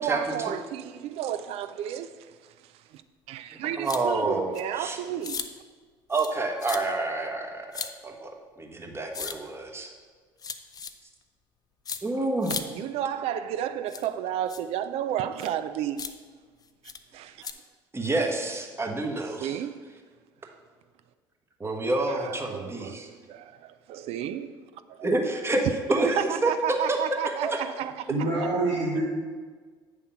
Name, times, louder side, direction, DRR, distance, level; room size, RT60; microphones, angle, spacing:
voice 1, 0.0-2.5 2.9-3.0 3.3-5.5 12.5-16.1 17.1-17.4 19.2-19.7 20.4-20.5 22.1-24.5 24.9-25.1 26.2-28.1, right 10 dB, 60° right, 0.4 m, -32 dB
sound 1, 3.8-4.0 4.5-4.6 5.2-5.5 6.1-6.3 6.6-6.8 7.7-7.9 9.1-9.3 10.4-10.9 11.9-12.0 12.4-12.6 13.9-14.1 14.5-14.6 15.4-15.5 16.0-16.1 16.8-17.0 17.4-17.5, left 6 dB, 30° left, 0.5 m, -35 dB
voice 2, 3.8-5.0 6.1-7.7 8.0-8.3 8.6-9.9 12.0-12.5 17.9-19.6 21.6-23.1 25.0-26.5 26.9-27.6, right 2 dB, 20° right, 1.2 m, -28 dB
voice 3, 28.1-29.0, right 2 dB, 80° right, 1.7 m, -26 dB
8.4 x 3.5 x 5.7 m
hypercardioid pair, 65°, 12 cm